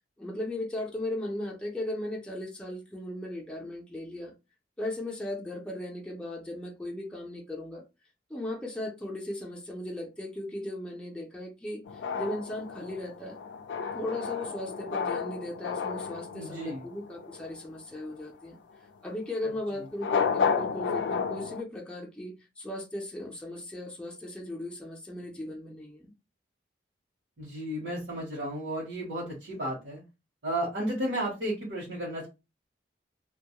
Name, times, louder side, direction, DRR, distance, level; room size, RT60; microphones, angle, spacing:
voice 1, 0.2-4.3 4.8-7.8 8.3-13.4 13.9-18.6 19.0-26.1, left 1 dB, 5° left, 0.5 m, -37 dB
sound 1, 11.9-17.6 19.9-21.6, left 6 dB, 85° left, 0.4 m, -32 dB
voice 2, 16.3-16.8 27.4-30.0 30.4-32.3, right 1 dB, 80° right, 1.0 m, -33 dB
2.2 x 2.0 x 2.8 m
head